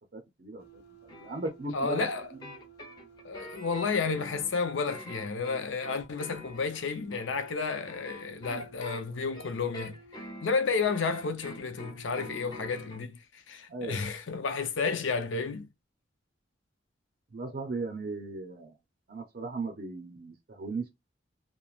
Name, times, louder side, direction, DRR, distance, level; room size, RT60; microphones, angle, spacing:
voice 1, 0.1-0.8 1.2-2.1 2.3-2.4 8.5-8.6 13.7-14.0 17.3-18.7 19.1-20.9, right 3 dB, 45° right, 0.5 m, -37 dB
sound 1, 0.6-4.5 6.3-13.0, right 2 dB, 60° left, 1.0 m, -55 dB
sound 2, 1.1-13.0, left 1 dB, 20° left, 0.9 m, -46 dB
voice 2, 1.7-2.3 3.2-10.0 10.4-15.7, left 4 dB, 80° left, 0.6 m, -31 dB
3.1 x 2.0 x 2.4 m
head